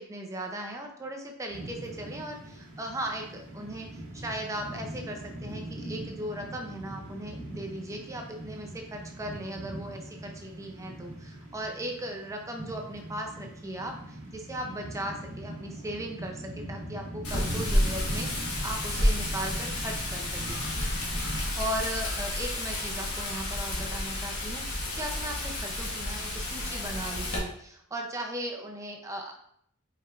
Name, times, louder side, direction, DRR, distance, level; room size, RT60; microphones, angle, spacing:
voice 1, 0.0-20.6 21.6-29.3, right 1 dB, 15° right, 2 dB, 0.4 m, -37 dB
sound 1, 1.5-21.4, right 1 dB, 60° right, 1.6 m, -41 dB
Wind, 17.2-27.4, left 1 dB, 80° left, 1.3 m, -31 dB
4.8 x 4.3 x 2.4 m, 0.69 s
head